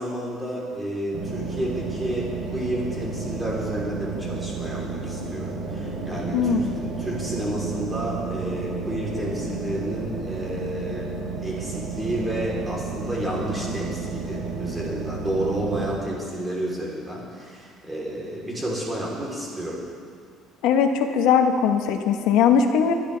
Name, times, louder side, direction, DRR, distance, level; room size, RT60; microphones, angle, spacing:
voice 1, 0.0-11.1 11.4-19.8, right 1 dB, 10° right, -4 dB, 3.3 m, -30 dB
sound 1, 1.1-16.0, right 4 dB, 75° right, 3.0 m, -32 dB
voice 2, 6.3-6.7 20.6-22.9, left 7 dB, 80° left, 4 dB, 1.1 m, -20 dB
23.5 x 10.5 x 3.3 m, 2.1 s
cardioid pair, 145°, 0 cm